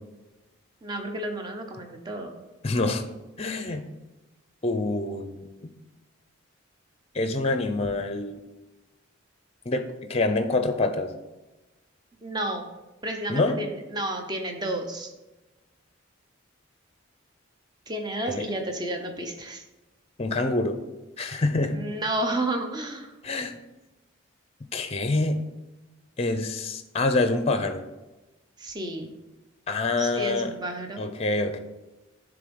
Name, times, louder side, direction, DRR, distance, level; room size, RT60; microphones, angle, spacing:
voice 1, 0.8-2.4 12.2-12.7 13.0-15.1 17.9-19.6 21.2-21.4 21.7-23.1 28.6-29.1 30.0-31.1, right 1 dB, 20° right, 4 dB, 0.8 m, -31 dB
voice 2, 2.6-3.0 3.4-3.8 4.6-5.7 7.1-8.4 9.7-11.1 13.3-13.6 18.3-18.4 20.2-20.8 21.2-21.8 23.2-23.6 24.7-25.4 26.2-27.8 29.7-30.5 31.0-31.6, left 2 dB, 30° left, 8 dB, 0.6 m, -26 dB
10.5 x 3.5 x 5.3 m, 1.1 s
head